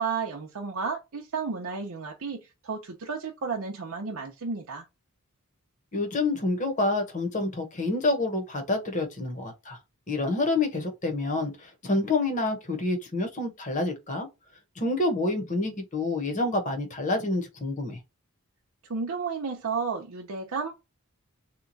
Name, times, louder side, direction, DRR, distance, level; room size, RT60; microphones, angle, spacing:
voice 1, 0.0-4.9 18.9-20.8, right 5 dB, 75° right, 0.7 m, -32 dB
voice 2, 5.9-9.8 10.1-14.3 14.8-18.0, left 2 dB, 35° left, 1.0 m, -28 dB
2.9 x 2.3 x 3.8 m
head